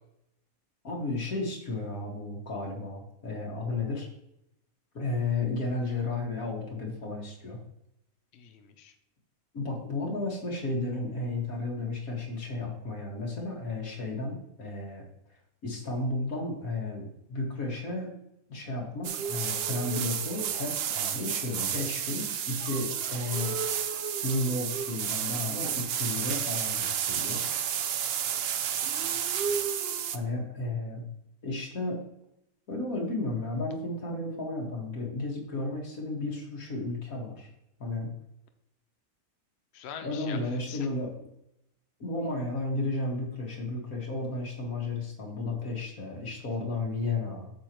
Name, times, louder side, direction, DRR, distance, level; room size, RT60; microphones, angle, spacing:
voice 1, 0.8-4.1 4.9-7.6 9.5-15.0 15.6-18.1 18.5-23.5 24.2-27.4 30.0-31.0 31.4-32.0 32.7-37.5 37.8-38.1 40.0-41.1 42.0-47.5, left 2 dB, 75° left, -1 dB, 2.4 m, -33 dB
voice 2, 8.3-8.9 28.7-29.6 39.7-40.9, left 7 dB, 55° left, 7 dB, 0.9 m, -46 dB
sound 1, 19.0-30.2, right 8 dB, 60° right, 0.7 m, -31 dB
sound 2, 20.7-26.3, right 1 dB, 5° left, 1.6 m, -53 dB
8.5 x 6.5 x 3.0 m, 0.82 s
omnidirectional pair, 1.5 m